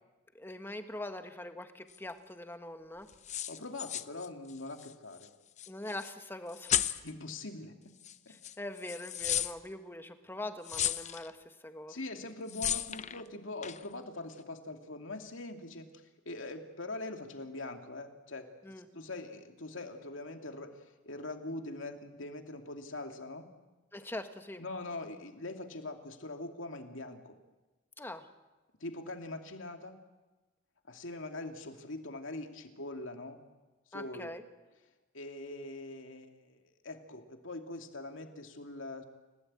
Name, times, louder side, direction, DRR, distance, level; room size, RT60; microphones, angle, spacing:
voice 1, 0.3-3.1 5.7-6.8 8.3-12.0 18.6-18.9 23.9-24.6 28.0-28.3 33.9-34.4, left 1 dB, 10° left, 7 dB, 1.4 m, -43 dB
sound 1, 1.9-2.0 3.1-4.9 5.2-5.3 5.6-6.1 6.5-7.1 8.0-8.2 8.4-9.5 10.6-11.3 12.5-13.2 13.6-13.9, left 11 dB, 35° left, 0.7 m, -34 dB
voice 2, 3.3-5.3 7.0-7.7 8.3-8.4 11.9-18.5 18.9-23.5 24.6-27.3 28.8-30.0 30.9-33.4 33.9-34.4 35.1-39.0, left 2 dB, 75° left, 5 dB, 2.5 m, -43 dB
29.0 x 17.0 x 8.8 m, 1.1 s
head